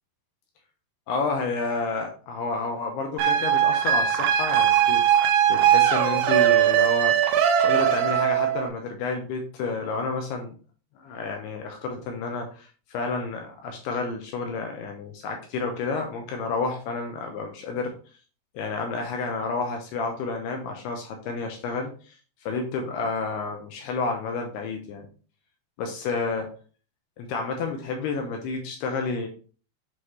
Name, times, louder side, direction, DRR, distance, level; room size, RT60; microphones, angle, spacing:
voice 1, 1.1-7.2 7.6-10.6 11.0-17.9 18.5-22.2 22.4-25.1 25.8-26.5 27.2-29.3, left 4 dB, 80° left, 3 dB, 2.4 m, -30 dB
sound 1, 3.2-8.7, right 10 dB, 85° right, 2.2 m, -20 dB
7.7 x 4.0 x 3.1 m, 0.39 s
omnidirectional pair, 5.4 m